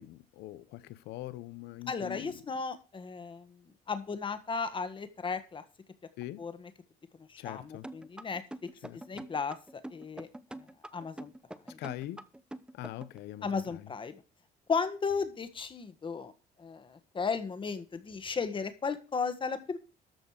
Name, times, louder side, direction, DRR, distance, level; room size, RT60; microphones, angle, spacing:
voice 1, 0.0-2.4 6.2-6.4 7.4-7.9 8.8-9.2 11.8-12.2 12.7-13.9, left 15 dB, 85° left, 0.8 m, -43 dB
voice 2, 1.9-3.6 3.9-5.6 6.4-6.7 7.3-8.4 9.1-10.3 10.9-11.3 11.7-11.8 13.4-14.1 14.7-16.3 16.6-19.8, left 5 dB, 30° left, 1.7 m, -35 dB
sound 1, 7.8-13.2, right 1 dB, 5° right, 0.8 m, -44 dB
13.5 x 5.2 x 6.6 m
cardioid pair, 110°, 17 cm